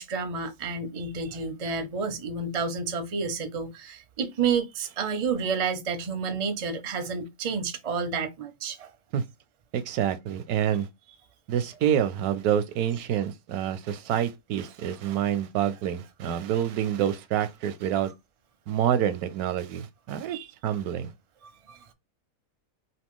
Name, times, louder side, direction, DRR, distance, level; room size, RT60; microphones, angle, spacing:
voice 1, 0.0-8.9 20.3-20.5 21.4-21.9, right 5 dB, 45° right, 0.4 m, -30 dB
voice 2, 9.7-10.9 11.5-18.1 18.7-20.4 20.6-21.1, right 10 dB, 85° right, 1.1 m, -27 dB
2.9 x 2.7 x 3.6 m
omnidirectional pair, 1.6 m